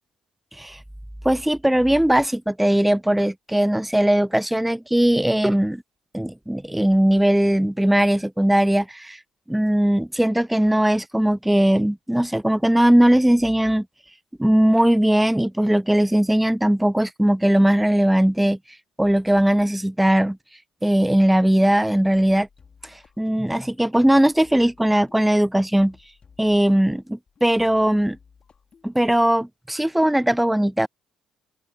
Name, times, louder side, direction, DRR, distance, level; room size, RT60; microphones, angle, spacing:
voice 1, 1.2-5.8 6.1-9.2 9.5-13.9 14.4-18.6 19.0-20.4 20.8-22.5 23.2-26.0 26.4-28.2 28.8-30.9, right 1 dB, 5° right, 0.4 m, -19 dB
sound 1, 22.1-29.3, left 6 dB, 40° left, 3.1 m, -55 dB
open air
figure-of-eight pair, 50°, 3 cm